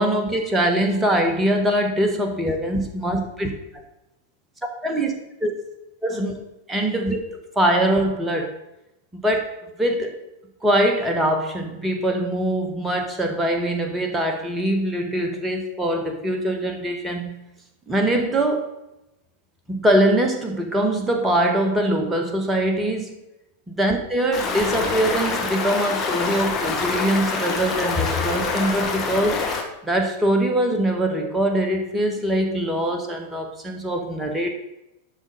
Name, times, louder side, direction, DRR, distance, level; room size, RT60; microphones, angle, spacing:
voice 1, 0.0-3.5 4.8-5.1 5.4-5.5 6.0-6.3 6.7-7.2 7.5-8.6 9.1-10.2 10.6-17.4 17.9-18.7 19.7-23.1 23.7-29.4 29.8-34.5, right 1 dB, 10° right, 3 dB, 1.4 m, -22 dB
Stream, 24.3-29.6, left 4 dB, 20° left, 1.6 m, -26 dB
11.5 x 4.0 x 5.3 m, 0.90 s
figure-of-eight pair, 90°, 0 cm